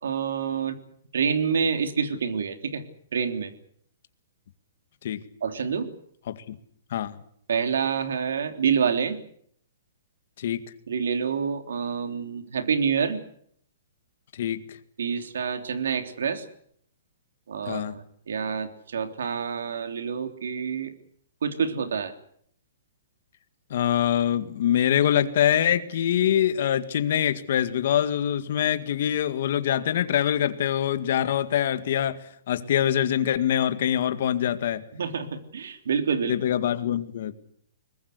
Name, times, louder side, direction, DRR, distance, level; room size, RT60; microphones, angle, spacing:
voice 1, 0.0-0.8 1.1-2.8 3.1-3.5 5.4-5.9 7.5-9.2 10.9-13.2 15.0-16.4 17.5-20.9 21.4-22.1 34.9-36.4, right 6 dB, 85° right, 8 dB, 3.4 m, -27 dB
voice 2, 6.3-6.6 6.9-7.2 10.4-10.6 14.3-14.6 17.7-18.0 23.7-34.8 36.3-37.3, left 10 dB, 55° left, 11 dB, 2.0 m, -24 dB
23.0 x 20.5 x 8.1 m, 0.65 s
hypercardioid pair, 165°, 0 cm